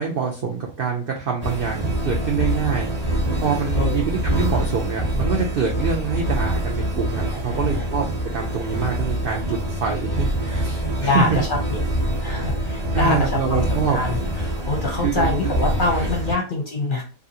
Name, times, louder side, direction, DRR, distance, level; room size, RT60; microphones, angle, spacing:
voice 1, 0.0-2.9 3.4-8.0 8.3-11.4 12.9-14.0 15.0-15.5 15.9-16.1, right 5 dB, 70° right, 0 dB, 0.5 m, -25 dB
sound 1, 1.4-16.4, right 1 dB, 35° right, 0.8 m, -25 dB
voice 2, 7.3-7.8 11.0-11.8 12.2-17.0, left 2 dB, 50° left, 0 dB, 0.7 m, -25 dB
3.1 x 2.4 x 2.7 m, 0.38 s
omnidirectional pair, 1.5 m